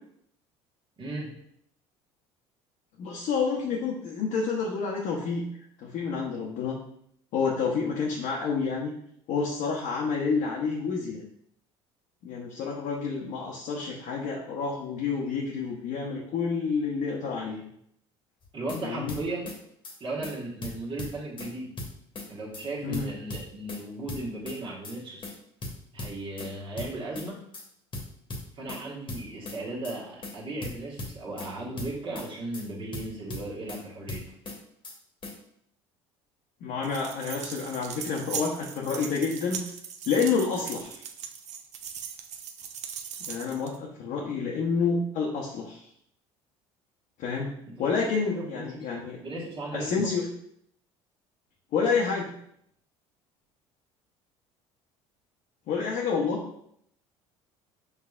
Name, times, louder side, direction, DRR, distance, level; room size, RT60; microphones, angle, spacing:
voice 1, 1.0-1.3 18.5-19.5 20.0-21.7 22.3-25.3 25.9-27.4 28.5-34.2 47.7-48.9 49.2-50.1, right 2 dB, 35° right, -5 dB, 1.5 m, -36 dB
voice 2, 3.0-5.4 5.8-6.8 7.3-9.0 9.3-11.2 12.2-17.7 18.8-19.1 22.8-23.1 36.6-39.7 40.1-41.0 43.3-45.8 47.2-49.2 49.7-50.2 51.7-52.3 55.7-56.4, left 5 dB, 60° left, -2 dB, 0.8 m, -29 dB
sound 1, 18.4-18.8 19.1-19.6 19.8-20.0 20.2-20.3 20.6-21.5 21.8-22.3 22.5-22.7 22.9-23.8 24.1-24.6 24.8-25.0 25.2-25.3 25.6-26.5 26.8-27.3 27.5-27.7 27.9-28.8 29.1-29.6 29.8-30.0 30.2-30.3 30.6-31.5 31.8-32.3 32.5-32.7 32.9-33.8 34.1-34.6 34.8-35.0 35.2-35.3, left 2 dB, 35° left, 1.2 m, -37 dB
sound 2, 36.8-43.8, right 8 dB, 50° right, 0.6 m, -39 dB
5.7 x 3.3 x 2.4 m, 0.71 s
hypercardioid pair, 65°, 15 cm